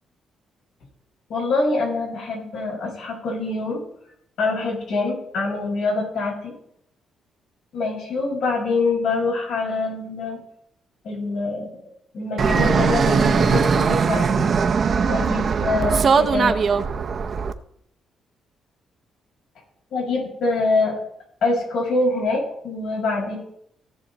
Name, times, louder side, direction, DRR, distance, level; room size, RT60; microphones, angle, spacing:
voice 1, 1.3-3.8 4.4-6.5 7.7-10.4 11.0-11.7 12.1-14.5 15.1-16.6 19.9-20.9 21.4-23.4, left 3 dB, 75° left, -2 dB, 5.5 m, -24 dB
Fixed-wing aircraft airplane, 12.4-17.5, right 5 dB, 50° right, 0.7 m, -20 dB
16.5 x 6.5 x 4.1 m, 0.71 s
cardioid pair, 90°, 0 cm